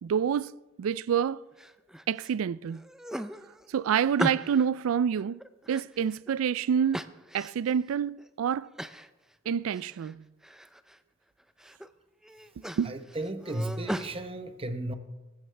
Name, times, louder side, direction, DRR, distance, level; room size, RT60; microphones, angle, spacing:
voice 1, 0.0-0.5 0.8-1.4 2.1-2.8 3.7-5.4 5.7-7.1 7.3-8.7 9.5-10.2 12.6-12.9, right 8 dB, 90° right, 0.3 m, -27 dB
sound 1, 1.6-2.3 2.7-4.7 5.2-6.4 6.9-7.7 8.2-8.3 8.8-9.1 9.4-10.1 10.4-11.0 11.4-11.9 12.2-14.1, equal, ahead, 0.4 m, -38 dB
voice 2, 12.9-14.9, right 1 dB, 30° right, 0.9 m, -34 dB
19.0 x 15.5 x 3.4 m
head